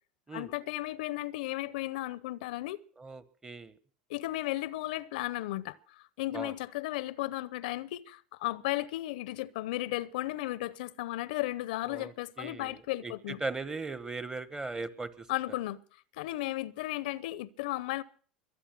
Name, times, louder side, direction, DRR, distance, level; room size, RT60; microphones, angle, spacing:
voice 1, 0.3-2.8 4.1-13.4 15.3-15.8 16.1-18.0, left 17 dB, 70° left, 0.7 m, -35 dB
voice 2, 3.0-3.7 6.3-6.5 11.9-13.1 13.4-15.3, right 3 dB, 15° right, 1.3 m, -38 dB
23.0 x 8.9 x 6.0 m
hypercardioid pair, 95°, 5 cm